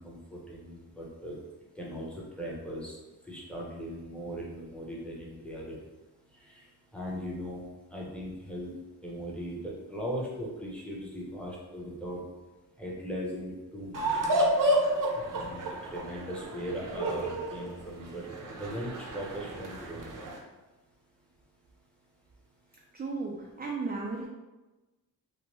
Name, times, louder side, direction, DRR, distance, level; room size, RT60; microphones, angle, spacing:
voice 1, 0.0-1.4 1.8-3.0 3.3-5.7 6.4-6.7 6.9-7.6 7.9-8.7 9.0-12.2 12.8-14.2 15.2-15.6 15.9-18.2 18.5-20.1, equal, 5° left, -4 dB, 0.7 m, -39 dB
sound 1, 13.9-20.4, right 1 dB, 60° right, 0.7 m, -30 dB
voice 2, 22.9-24.3, right 3 dB, 25° right, -2 dB, 0.4 m, -35 dB
3.0 x 2.1 x 3.0 m, 1.1 s
cardioid pair, 95°, 37 cm